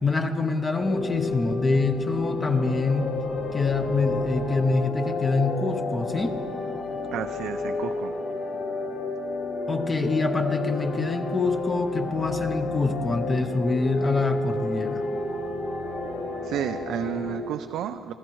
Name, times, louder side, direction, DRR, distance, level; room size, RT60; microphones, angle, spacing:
voice 1, 0.0-3.1 3.5-6.4 9.7-15.0, left 3 dB, 20° left, 7 dB, 0.7 m, -25 dB
sound 1, 0.8-17.4, left 3 dB, 55° left, 2.0 m, -31 dB
voice 2, 7.1-8.1 16.4-18.1, right 10 dB, 70° right, 8 dB, 0.4 m, -31 dB
26.5 x 14.5 x 3.1 m, 2.7 s
cardioid pair, 160°, 0 cm